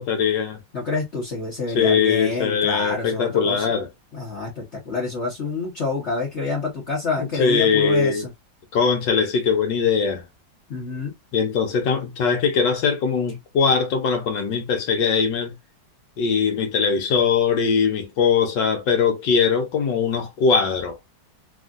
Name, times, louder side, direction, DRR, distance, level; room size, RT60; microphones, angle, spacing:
voice 1, 0.0-0.6 1.7-3.9 7.2-8.3 8.7-10.2 11.3-15.5 16.2-21.0, left 6 dB, 70° left, 1.4 m, -21 dB
voice 2, 0.7-3.6 4.1-8.3 10.7-11.1, left 3 dB, 45° left, 1.1 m, -27 dB
3.4 x 2.5 x 2.4 m
omnidirectional pair, 2.1 m